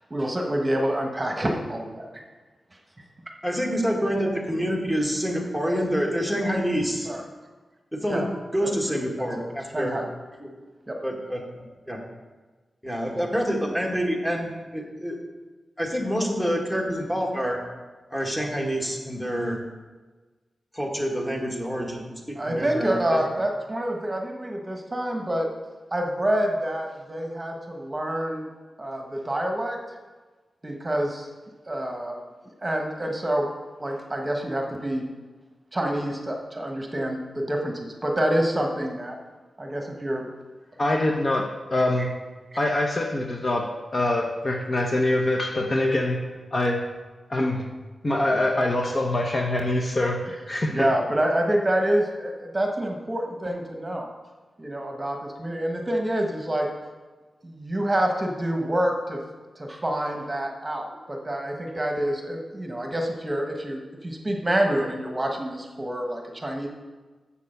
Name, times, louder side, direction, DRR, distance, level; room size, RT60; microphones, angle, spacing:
voice 1, 0.1-2.1 7.0-7.2 8.0-8.3 8.6-8.7 9.2-9.5 9.7-10.0 10.9-11.0 22.4-25.5 25.9-28.5 28.8-29.8 30.6-31.3 31.7-32.2 32.4-33.5 33.8-35.1 35.7-39.2 39.6-40.3 42.0-42.1 42.5-42.6 50.7-54.1 54.6-56.7 57.4-59.2 59.6-66.7, right 1 dB, 20° right, 1 dB, 1.3 m, -27 dB
voice 2, 3.4-7.1 7.9-8.2 8.5-10.0 10.4-10.5 11.0-12.0 12.8-15.2 15.8-17.6 18.1-19.6 20.7-23.2, equal, 10° left, 0 dB, 1.8 m, -27 dB
voice 3, 40.8-42.1 42.6-46.2 46.5-46.9 47.3-47.7 48.0-50.9, left 1 dB, 40° left, 2 dB, 0.9 m, -24 dB
7.1 x 6.7 x 6.6 m, 1.3 s
wide cardioid pair, 80°, 0 cm